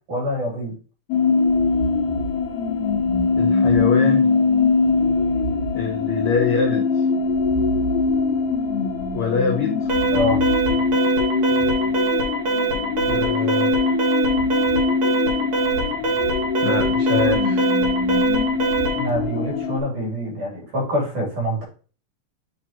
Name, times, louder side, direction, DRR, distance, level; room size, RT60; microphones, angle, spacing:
voice 1, 0.1-0.8 10.1-10.4 19.0-21.6, equal, 75° right, -3 dB, 4.5 m, -25 dB
sound 1, 1.1-19.8, left 4 dB, 65° left, 1.9 m, -21 dB
voice 2, 3.4-4.2 5.7-6.8 9.1-9.9 13.1-13.9 16.6-17.7, left 5 dB, 85° left, 2 dB, 1.2 m, -24 dB
Alarm, 9.9-19.1, right 4 dB, 50° right, 1.1 m, -24 dB
7.6 x 2.8 x 4.4 m, 0.38 s
omnidirectional pair, 3.6 m